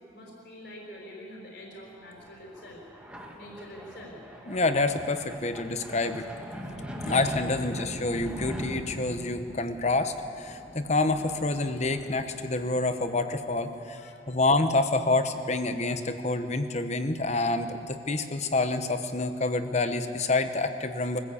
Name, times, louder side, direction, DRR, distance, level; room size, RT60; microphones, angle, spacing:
voice 1, 0.1-2.8 3.4-4.1 14.0-14.3, equal, 55° left, -1 dB, 4.6 m, -45 dB
sound 1, 1.9-13.2, equal, 5° right, 1.8 m, -41 dB
voice 2, 4.5-6.3 7.0-21.2, left 2 dB, 35° left, 9 dB, 1.0 m, -27 dB
23.5 x 15.0 x 8.4 m, 2.7 s
head